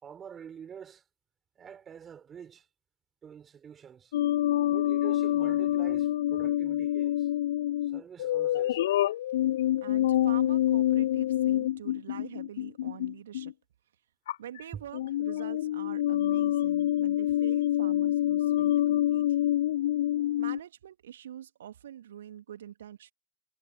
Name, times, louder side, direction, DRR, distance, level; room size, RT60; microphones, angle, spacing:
voice 1, 0.0-1.0 1.6-2.7 3.2-4.1 4.6-7.3 7.8-9.0 14.7-14.8, right 8 dB, 20° right, 4.0 m, -46 dB
sound 1, 4.1-13.5 14.3-14.6 14.9-20.6, left 13 dB, 60° left, 0.3 m, -27 dB
voice 2, 9.8-13.5 14.4-19.5 20.4-23.1, right 10 dB, 60° right, 2.6 m, -45 dB
figure-of-eight pair, 90°, 0 cm